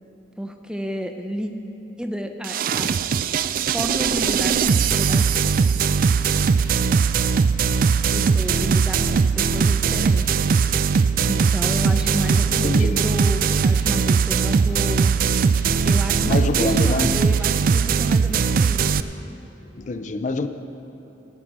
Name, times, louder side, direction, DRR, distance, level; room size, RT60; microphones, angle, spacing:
voice 1, 0.4-1.5 2.0-3.0 3.6-5.2 8.1-10.4 11.2-15.2 15.8-19.0, equal, 5° right, 6 dB, 0.6 m, -31 dB
sound 1, 2.4-19.0, right 5 dB, 50° right, 0.3 m, -20 dB
voice 2, 12.5-13.0 16.3-17.1 19.7-20.5, left 3 dB, 45° left, 9 dB, 0.4 m, -26 dB
16.0 x 6.0 x 7.4 m, 3.0 s
head